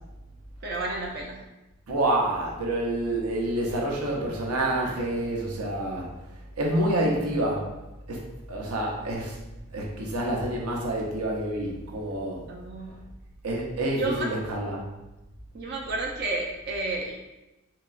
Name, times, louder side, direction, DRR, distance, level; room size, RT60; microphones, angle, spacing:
voice 1, 0.6-1.4 12.5-13.0 14.0-14.3 15.5-17.1, right 3 dB, 45° right, -1 dB, 0.4 m, -31 dB
voice 2, 1.9-6.1 6.6-7.7 8.1-8.2 8.5-9.4 9.7-12.5 13.4-14.9, right 1 dB, 80° right, -1 dB, 0.8 m, -28 dB
3.7 x 2.9 x 2.5 m, 0.99 s
head